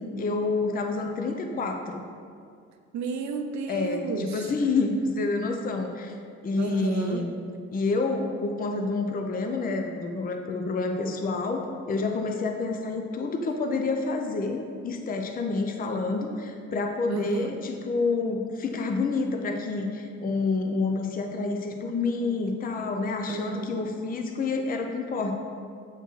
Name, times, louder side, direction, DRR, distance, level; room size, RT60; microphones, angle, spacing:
voice 1, 0.0-2.0 3.7-6.1 6.4-7.3 7.7-25.4, left 3 dB, 30° left, 4 dB, 0.5 m, -28 dB
voice 2, 2.9-4.5 6.6-7.3 17.1-17.5 23.3-23.9, right 6 dB, 65° right, 6 dB, 0.5 m, -33 dB
7.9 x 4.4 x 3.1 m, 2.3 s
cardioid pair, 90°, 30 cm